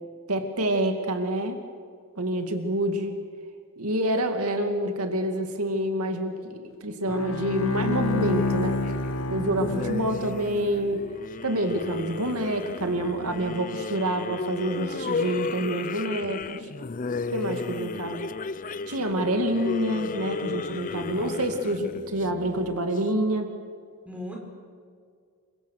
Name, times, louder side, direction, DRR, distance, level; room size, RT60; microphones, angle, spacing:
voice 1, 0.3-1.6 2.2-3.1 3.8-8.8 9.3-11.0 11.4-16.7 17.3-18.3 18.9-23.5, right 1 dB, 85° right, 5 dB, 2.3 m, -27 dB
Bowed string instrument, 7.1-10.6, left 2 dB, 65° left, 1.6 m, -28 dB
sound 1, 8.1-23.0, left 4 dB, 35° left, 0.5 m, -34 dB
voice 2, 20.6-21.4 24.1-24.4, left 1 dB, 5° right, -1 dB, 5.5 m, -39 dB
28.5 x 24.0 x 6.5 m, 2.1 s
head